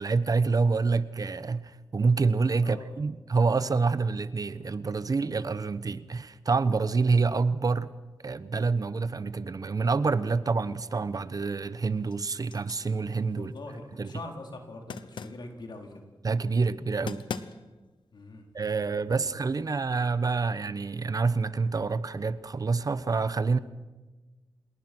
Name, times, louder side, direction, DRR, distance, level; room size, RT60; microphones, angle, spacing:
voice 1, 0.0-7.9 8.2-13.5 13.9-14.1 16.2-17.2 18.5-23.6, right 4 dB, 50° right, 14 dB, 1.0 m, -27 dB
voice 2, 2.6-3.1 13.3-16.0 18.1-18.5, left 2 dB, 70° left, 3 dB, 4.1 m, -43 dB
sound 1, 10.6-11.2 11.6-13.8 14.9-15.5 16.7-16.8 17.1-17.9, left 6 dB, 85° left, 1.0 m, -41 dB
26.5 x 20.5 x 6.2 m, 1.2 s
cardioid pair, 65°, 8 cm